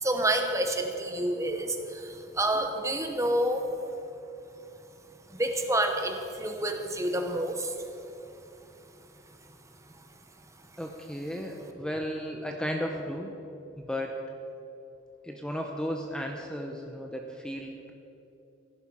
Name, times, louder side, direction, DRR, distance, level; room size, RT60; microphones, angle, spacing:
voice 1, 0.0-3.7 5.3-7.9, right 1 dB, 15° right, 5 dB, 1.0 m, -28 dB
voice 2, 10.8-13.3 13.8-14.1 15.2-17.9, equal, 5° left, 2 dB, 0.8 m, -34 dB
15.5 x 11.5 x 4.9 m, 2.8 s
head